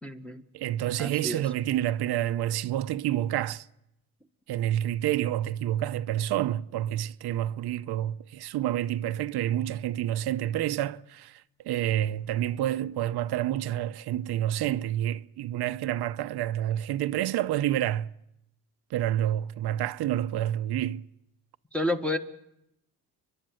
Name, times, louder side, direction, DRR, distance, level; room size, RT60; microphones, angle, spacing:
voice 1, 0.0-0.4 1.0-1.4 21.7-22.2, left 1 dB, 5° left, 1.3 m, -30 dB
voice 2, 0.5-3.7 4.5-18.1 18.9-21.0, right 12 dB, 85° right, 0.7 m, -28 dB
30.0 x 11.5 x 7.7 m
cardioid pair, 125°, 38 cm